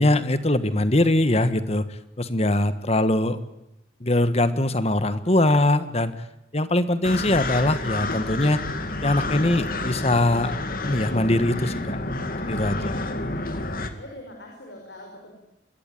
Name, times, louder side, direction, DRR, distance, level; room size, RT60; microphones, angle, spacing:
voice 1, 0.0-1.8 2.2-3.4 4.0-6.1 6.5-8.6 9.0-12.0 12.5-13.0, left 1 dB, 35° left, 12 dB, 1.5 m, -22 dB
sound 1, 7.0-13.9, left 2 dB, 50° left, 2.3 m, -29 dB
voice 2, 13.9-15.3, left 1 dB, 70° left, 1 dB, 5.6 m, -45 dB
25.5 x 21.0 x 9.3 m, 0.88 s
head